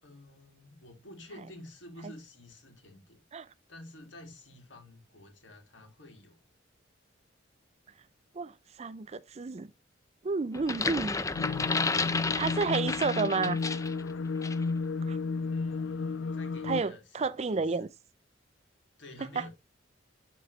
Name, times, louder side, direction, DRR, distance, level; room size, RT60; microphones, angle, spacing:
voice 1, 0.0-3.2 3.7-6.4 15.5-17.9 19.0-19.5, left 1 dB, 70° left, 2.4 m, -50 dB
voice 2, 8.8-9.7 10.2-11.1 12.4-13.6 15.1-15.2 16.6-17.9, right 4 dB, 35° right, 0.4 m, -30 dB
sound 1, 10.5-14.0 14.4-14.6, left 3 dB, 15° left, 0.5 m, -32 dB
sound 2, 11.3-16.8, left 4 dB, 90° left, 0.4 m, -32 dB
11.5 x 4.1 x 3.2 m
head